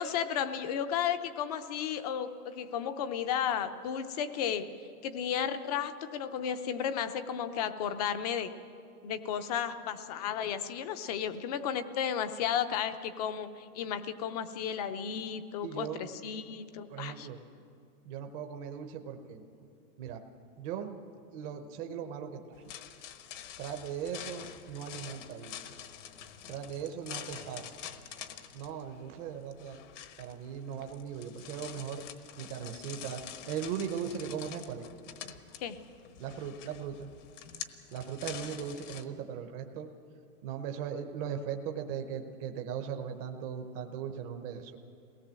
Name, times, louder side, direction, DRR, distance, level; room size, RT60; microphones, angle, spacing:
voice 1, 0.0-4.7 5.0-8.5 9.0-17.3 35.6-35.8, left 8 dB, 30° left, 11 dB, 0.6 m, -33 dB
voice 2, 15.6-16.1 16.9-17.4 18.0-19.4 20.0-20.2 20.6-21.0 21.3-22.6 23.6-25.6 26.5-27.7 28.5-29.8 30.2-32.0 32.4-33.2 33.5-34.8 35.2-35.3 36.2-37.1 37.9-39.9 40.4-44.8, right 8 dB, 25° right, 5 dB, 0.7 m, -38 dB
sound 1, 22.5-39.0, left 9 dB, 55° left, 1.2 m, -47 dB
23.0 x 18.0 x 7.5 m, 2.5 s
supercardioid pair, 165°, 44 cm